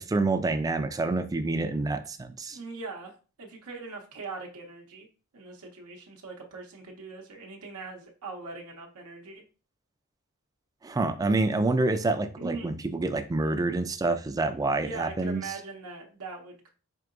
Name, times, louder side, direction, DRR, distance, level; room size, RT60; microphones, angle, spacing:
voice 1, 0.0-2.6 10.8-15.4, right 2 dB, 15° right, 9 dB, 0.3 m, -27 dB
voice 2, 2.5-5.1 5.3-9.4 12.4-12.8 14.8-16.7, right 4 dB, 85° right, 2 dB, 0.7 m, -41 dB
4.6 x 2.8 x 2.5 m, 0.35 s
head